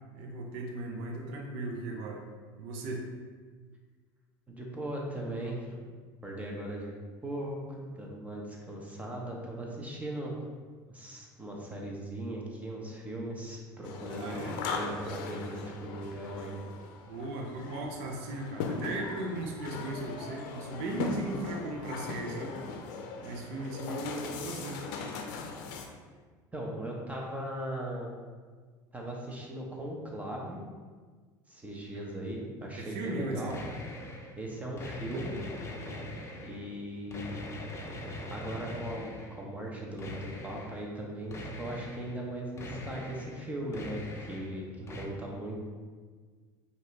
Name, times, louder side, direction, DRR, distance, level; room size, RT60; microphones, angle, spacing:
voice 1, 0.1-2.2 2.6-3.1 14.2-14.6 17.1-22.6 23.2-24.9 31.9-32.3 32.8-33.6 35.7-36.2 44.8-45.6, right 2 dB, 75° right, 1 dB, 0.7 m, -37 dB
voice 2, 4.5-5.7 6.2-6.9 7.2-10.3 10.9-16.6 26.5-28.1 28.9-30.6 31.5-33.6 34.4-35.4 36.4-37.4 38.3-44.0 44.3-45.6, right 1 dB, 15° right, -2 dB, 0.9 m, -38 dB
sound 1, 13.8-25.9, left 5 dB, 80° left, 0.5 m, -39 dB
sound 2, 33.5-34.3 34.8-36.7 37.1-39.4 40.0-40.8 41.3-42.1 42.6-43.4 43.7-44.6 44.9-45.0, left 1 dB, 25° left, 0.7 m, -42 dB
5.2 x 2.6 x 3.2 m, 1.5 s
supercardioid pair, 105°, 10 cm